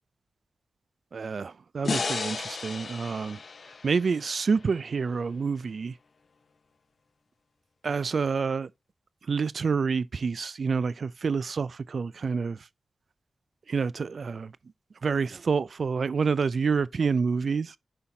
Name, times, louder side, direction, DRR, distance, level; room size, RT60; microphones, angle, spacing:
voice 1, 1.1-3.4 3.8-5.9 7.8-8.7 9.3-12.6 13.7-14.5 15.0-17.7, right 5 dB, 70° right, 0.3 m, -28 dB
sound 1, 1.8-5.1, left 4 dB, 65° left, 0.7 m, -34 dB
9.9 x 5.6 x 2.7 m
cardioid pair, 40°, 0 cm